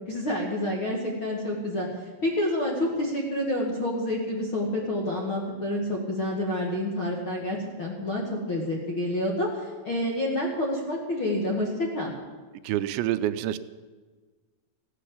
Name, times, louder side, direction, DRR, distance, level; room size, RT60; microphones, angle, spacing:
voice 1, 0.1-1.9 2.2-12.1, left 1 dB, 45° left, -2 dB, 1.7 m, -28 dB
voice 2, 12.7-13.6, right 12 dB, 85° right, 12 dB, 2.9 m, -27 dB
16.0 x 10.0 x 8.5 m, 1.4 s
omnidirectional pair, 5.2 m